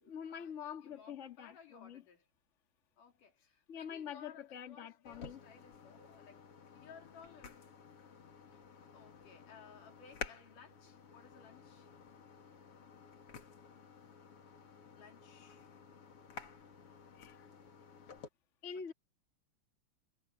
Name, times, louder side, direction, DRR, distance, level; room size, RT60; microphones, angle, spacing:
voice 1, 0.0-2.0 3.7-5.4 17.1-17.5 18.6-18.9, left 7 dB, 30° left, 1.6 m, -46 dB
voice 2, 0.8-2.3 3.0-7.6 8.5-8.7 8.9-11.9 15.0-15.7 18.7-18.9, left 6 dB, 90° left, 4.6 m, -59 dB
sound 1, 5.0-18.3, left 6 dB, 50° left, 2.9 m, -53 dB
omnidirectional pair, 3.6 m